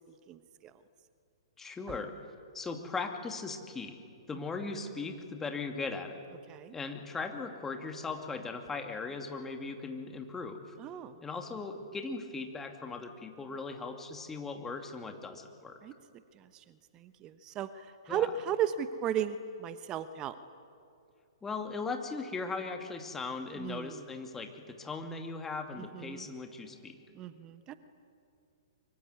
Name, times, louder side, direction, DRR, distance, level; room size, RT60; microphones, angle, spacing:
voice 1, 0.3-0.7 1.9-2.0 6.5-6.7 10.8-11.2 15.8-15.9 16.3-16.6 16.9-20.3 23.6-24.0 25.9-26.3 27.1-27.8, right 9 dB, 25° right, 12 dB, 1.0 m, -35 dB
voice 2, 1.6-2.2 2.5-4.0 4.3-6.2 6.7-10.8 11.2-15.8 18.1-18.3 21.4-27.0, left 4 dB, 10° left, 5 dB, 2.6 m, -38 dB
24.5 x 23.5 x 9.6 m, 2.5 s
figure-of-eight pair, 115°, 3 cm